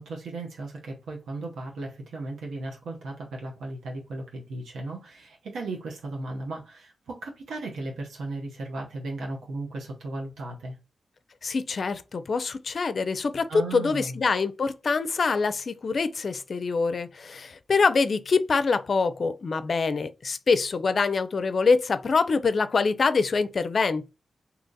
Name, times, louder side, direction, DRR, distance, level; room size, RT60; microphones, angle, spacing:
voice 1, 0.0-10.8 13.5-14.2, right 2 dB, 90° right, 0.8 m, -36 dB
voice 2, 11.4-24.1, left 4 dB, 65° left, 0.4 m, -25 dB
2.8 x 2.5 x 3.8 m
supercardioid pair, 40°, 0 cm